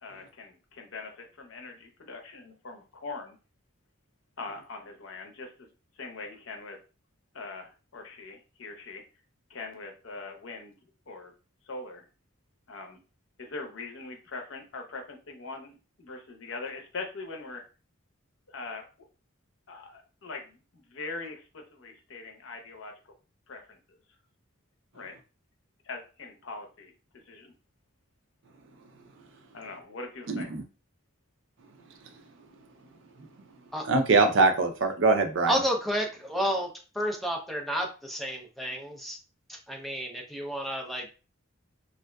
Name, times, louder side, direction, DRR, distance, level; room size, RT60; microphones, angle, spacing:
voice 1, 0.0-3.4 4.4-5.7 6.0-6.8 7.3-9.0 9.5-10.8 11.1-11.3 11.7-12.1 12.7-13.0 13.4-17.6 18.5-18.8 19.7-22.9 23.5-24.0 24.9-25.1 25.8-26.9 27.3-27.5 29.5-30.5, left 3 dB, 70° left, 3 dB, 0.7 m, -42 dB
voice 2, 30.3-30.6 33.9-35.6, right 3 dB, 65° right, 6 dB, 0.5 m, -23 dB
voice 3, 35.5-36.7 36.9-39.2 39.5-41.1, equal, ahead, 1 dB, 0.5 m, -31 dB
3.5 x 2.5 x 2.2 m, 0.34 s
head